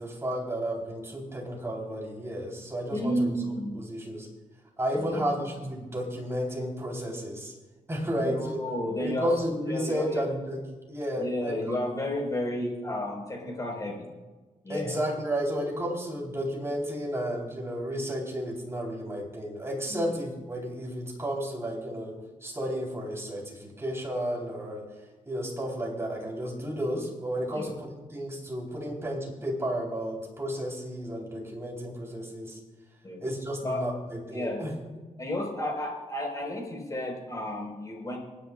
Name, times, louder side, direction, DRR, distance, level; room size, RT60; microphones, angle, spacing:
voice 1, 0.0-3.3 3.8-4.3 4.8-7.5 7.9-8.5 9.0-10.6 10.9-11.7 14.7-24.8 25.3-32.6 33.2-34.7, equal, 20° right, -1 dB, 3.8 m, -32 dB
voice 2, 2.9-3.8 5.0-5.4 8.2-9.3 9.7-10.3 11.2-14.1 14.6-14.9 19.9-20.0 27.5-27.7 33.0-33.2 33.6-33.8 34.3-34.6 35.2-38.2, left 1 dB, 25° left, 0 dB, 4.6 m, -32 dB
28.5 x 10.0 x 2.5 m, 1.2 s
wide cardioid pair, 115°, 13 cm